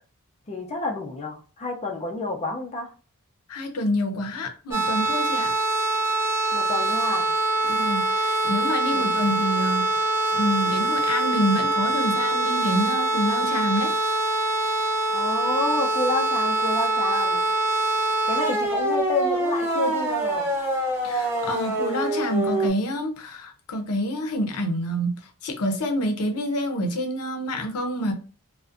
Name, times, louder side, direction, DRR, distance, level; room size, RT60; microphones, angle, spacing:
voice 1, 0.5-2.9 6.5-7.3 8.9-9.2 15.1-17.5 18.3-20.5, left 2 dB, 30° left, 0.4 m, -29 dB
voice 2, 3.5-5.5 7.7-13.9 21.0-25.2 25.4-28.1, equal, 85° left, 0.5 m, -27 dB
sound 1, 4.7-22.7, right 2 dB, 10° right, 0.7 m, -24 dB
2.5 x 2.1 x 2.4 m
head